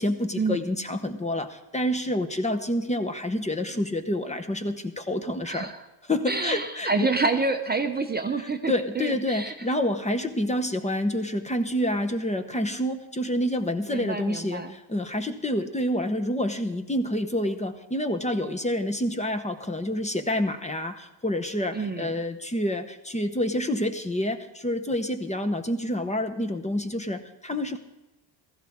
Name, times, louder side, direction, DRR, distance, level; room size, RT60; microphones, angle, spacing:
voice 1, 0.0-5.7 6.0-7.1 8.4-27.8, left 1 dB, 15° left, 7 dB, 1.0 m, -28 dB
voice 2, 6.3-9.5 13.9-14.7 21.7-22.1, right 4 dB, 20° right, 6 dB, 0.8 m, -28 dB
16.0 x 14.0 x 3.6 m, 1.0 s
cardioid pair, 105°, 46 cm